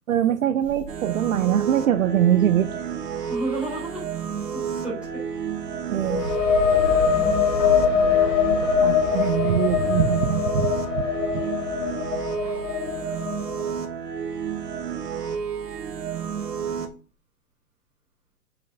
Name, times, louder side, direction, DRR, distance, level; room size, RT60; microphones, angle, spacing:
voice 1, 0.1-2.7 5.9-6.3 8.8-10.7 11.0-11.1 11.3-11.4, right 10 dB, 60° right, 11 dB, 0.7 m, -22 dB
sound 1, 0.9-16.9, right 7 dB, 90° right, 1.6 m, -31 dB
voice 2, 3.3-4.0 4.5-5.0 6.2-6.7 7.1-8.7 11.3-11.5 12.4-12.6, right 2 dB, ahead, -6 dB, 3.6 m, -35 dB
sound 2, 6.0-13.6, left 7 dB, 55° left, 1.7 m, -23 dB
7.8 x 6.8 x 2.7 m, 0.37 s
hypercardioid pair, 160°, 47 cm